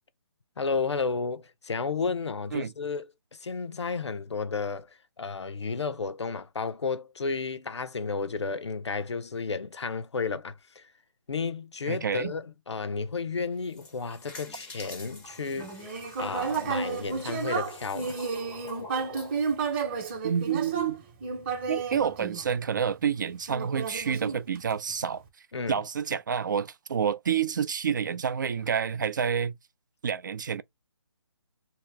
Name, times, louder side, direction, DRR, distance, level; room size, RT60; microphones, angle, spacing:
voice 1, 0.6-3.1 3.4-10.8 11.3-15.7 16.2-18.2 25.5-25.8, left 4 dB, 80° left, 0.7 m, -32 dB
voice 2, 11.9-12.3 20.2-21.0 21.7-25.2 25.7-29.5 30.0-30.6, right 7 dB, 45° right, 0.5 m, -28 dB
sound 1, 13.5-20.1, left 3 dB, 5° left, 0.6 m, -47 dB
Human voice, 15.5-22.9 23.5-24.9, right 5 dB, 25° right, 0.9 m, -32 dB
3.1 x 2.9 x 3.4 m
hypercardioid pair, 160°, 14 cm